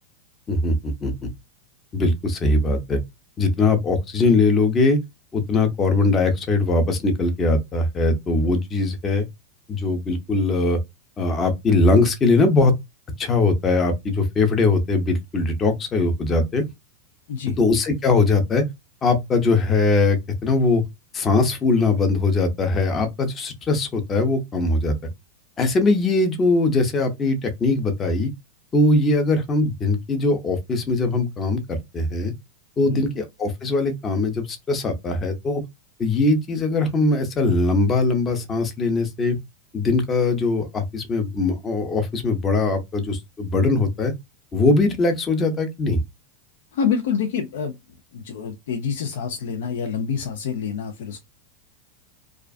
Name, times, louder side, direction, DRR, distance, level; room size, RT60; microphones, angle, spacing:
voice 1, 0.5-1.3 1.9-3.0 3.4-5.0 5.3-9.3 9.7-10.8 11.2-12.7 13.2-16.6 17.6-18.6 19.0-20.8 21.1-24.9 25.6-28.3 28.7-32.3 32.8-35.6 36.0-39.4 39.7-44.1 44.5-46.0, left 3 dB, 25° left, 0.7 m, -21 dB
voice 2, 46.7-47.8 48.1-51.2, left 7 dB, 70° left, 0.5 m, -27 dB
2.3 x 2.3 x 2.4 m
hypercardioid pair, 100°, 0 cm